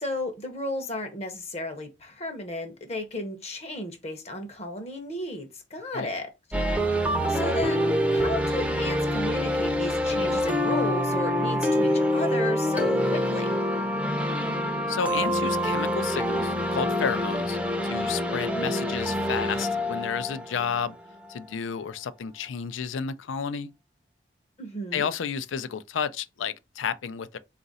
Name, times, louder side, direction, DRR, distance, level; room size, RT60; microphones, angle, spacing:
voice 1, 0.0-6.3 7.3-13.6 24.6-25.1, left 1 dB, 35° left, 0.7 m, -34 dB
sound 1, 6.5-21.4, equal, 5° right, 0.6 m, -26 dB
voice 2, 14.9-21.0 21.3-23.7 24.9-27.4, left 6 dB, 80° left, 0.4 m, -31 dB
4.0 x 2.5 x 3.9 m
head